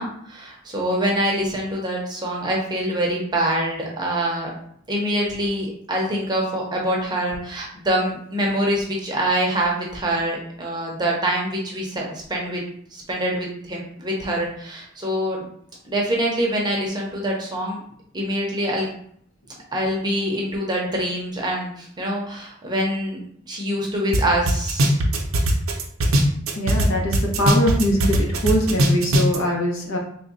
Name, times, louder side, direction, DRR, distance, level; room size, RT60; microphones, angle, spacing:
voice 1, 0.0-4.5 4.9-12.6 12.9-15.4 15.9-17.8 18.1-18.9 19.7-21.7 22.0-23.2 23.5-25.0, right 1 dB, 20° right, -2 dB, 0.7 m, -25 dB
sound 1, 24.1-24.2 24.5-26.9 27.1-29.4, right 1 dB, 70° right, 0.6 m, -19 dB
voice 2, 26.6-30.0, equal, 65° left, 0 dB, 0.8 m, -22 dB
3.5 x 2.2 x 4.0 m, 0.65 s
head